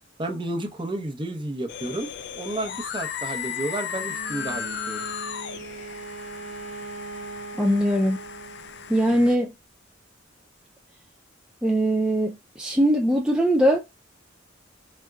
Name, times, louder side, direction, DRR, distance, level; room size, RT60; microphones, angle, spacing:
voice 1, 0.2-2.1 2.3-5.0 9.1-9.2, right 1 dB, 25° right, 0.8 m, -31 dB
sound 1, 1.7-9.4, left 8 dB, 60° left, 0.4 m, -36 dB
Bowed string instrument, 3.9-9.1, right 3 dB, 80° right, 0.7 m, -39 dB
voice 2, 7.6-8.2 8.9-9.5 11.6-13.8, equal, 5° right, 0.4 m, -21 dB
4.3 x 3.5 x 2.3 m
head